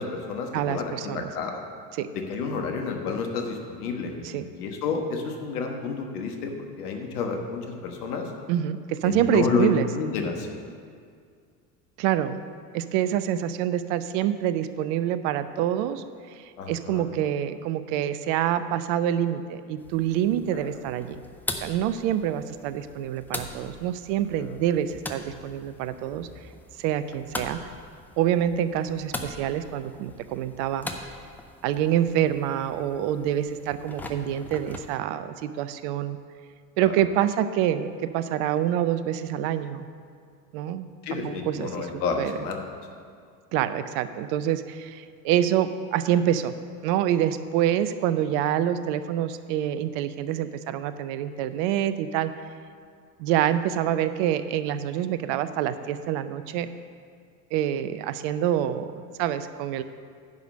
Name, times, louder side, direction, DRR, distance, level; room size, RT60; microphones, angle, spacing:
voice 1, 0.0-1.6 2.1-8.3 9.0-10.7 16.6-17.0 20.5-20.7 36.8-36.9 41.0-42.6, left 4 dB, 65° left, 3 dB, 1.4 m, -30 dB
voice 2, 0.5-1.3 2.0-2.1 4.2-4.5 8.5-9.9 12.0-12.4 12.7-21.2 21.6-26.3 26.8-27.6 28.2-30.9 31.6-36.2 36.8-39.9 40.5-42.3 43.5-46.5 46.8-52.3 53.2-56.7 57.5-58.9 59.2-59.8, right 11 dB, 45° right, 12 dB, 0.6 m, -26 dB
sound 1, 19.8-35.0, left 2 dB, 5° left, 0.4 m, -41 dB
10.5 x 5.0 x 6.4 m, 2.1 s
figure-of-eight pair, 75°, 49 cm